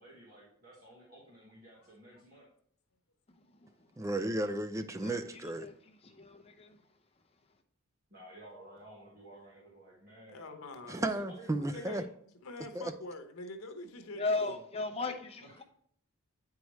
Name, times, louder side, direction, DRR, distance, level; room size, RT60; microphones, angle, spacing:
voice 1, 0.0-2.5 8.1-10.4 11.0-12.1 15.4-15.6, right 1 dB, 45° right, 1.4 m, -53 dB
voice 2, 1.7-2.2 10.3-11.0 11.7-12.1 12.4-14.6, left 2 dB, 90° left, 0.9 m, -45 dB
voice 3, 4.0-5.7 10.9-12.0 12.7-12.9, right 1 dB, 15° right, 0.3 m, -34 dB
voice 4, 6.0-6.7 14.2-15.4, left 3 dB, 30° left, 0.6 m, -35 dB
8.3 x 4.7 x 3.1 m
head